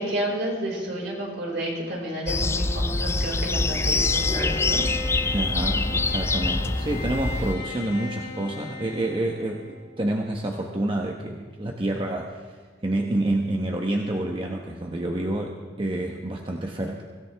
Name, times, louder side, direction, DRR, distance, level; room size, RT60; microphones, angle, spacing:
voice 1, 0.0-4.8, right 1 dB, 65° right, -2 dB, 5.2 m, -30 dB
sound 1, 2.3-7.5, left 3 dB, 15° left, 0.4 m, -25 dB
Bowed string instrument, 4.0-10.0, left 4 dB, 70° left, 4.9 m, -37 dB
voice 2, 5.3-9.6 10.0-12.4 12.8-17.0, right 1 dB, 30° right, 1 dB, 1.1 m, -28 dB
24.5 x 16.5 x 3.5 m, 1.5 s
head